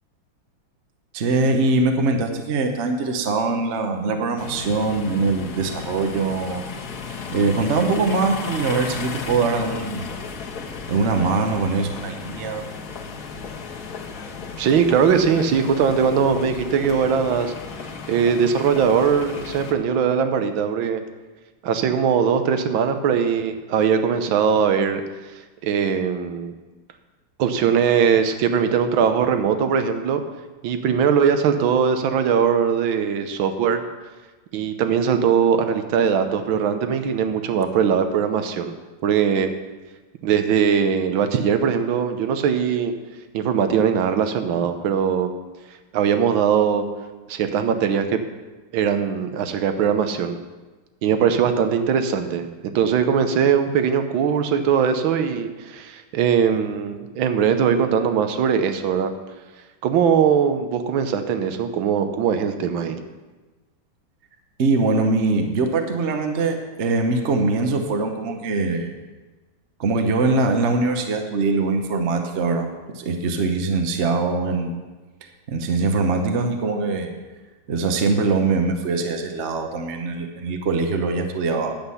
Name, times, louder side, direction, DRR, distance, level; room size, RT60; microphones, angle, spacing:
voice 1, 1.1-6.6 7.1-10.1 10.9-12.7 64.6-68.9 69.8-72.7 72.9-74.7 75.5-77.1 77.7-81.7, right 3 dB, 45° right, 4 dB, 1.0 m, -22 dB
sound 1, 4.4-19.7, left 5 dB, 55° left, 1.5 m, -34 dB
voice 2, 14.6-17.5 18.1-21.0 21.6-25.0 25.6-26.5 27.4-30.2 30.6-33.8 34.5-38.7 39.0-39.5 40.2-42.9 43.3-45.3 45.9-46.8 47.3-48.2 48.7-50.4 51.0-59.1 59.8-63.0, right 7 dB, 75° right, 8 dB, 1.6 m, -20 dB
10.5 x 8.1 x 5.6 m, 1.2 s
omnidirectional pair, 2.2 m